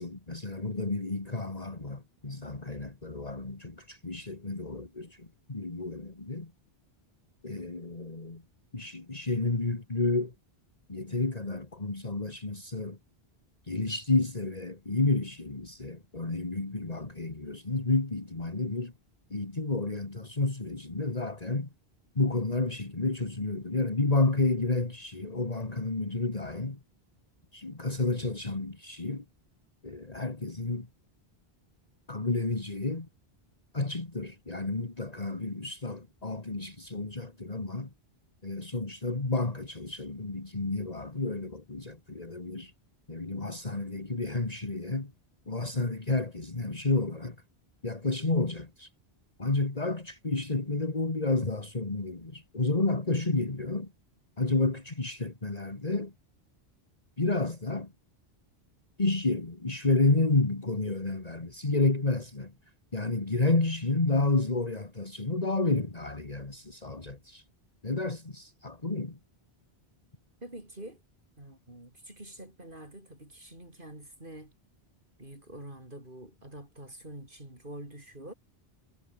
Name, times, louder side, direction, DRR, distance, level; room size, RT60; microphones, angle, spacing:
voice 1, 0.0-6.5 7.4-8.4 8.7-10.3 10.9-13.0 13.7-18.9 19.3-21.7 22.2-26.8 27.5-29.2 29.8-30.9 32.1-33.1 33.7-37.9 38.4-42.7 43.1-45.1 45.5-47.4 47.8-48.9 49.4-53.9 54.4-56.1 57.2-57.9 59.0-62.5 62.9-67.4 67.8-69.2, left 2 dB, 40° left, 2.3 m, -30 dB
voice 2, 70.4-71.0 71.4-74.5 75.2-78.3, right 1 dB, 55° right, 6.2 m, -46 dB
omnidirectional pair, 1.1 m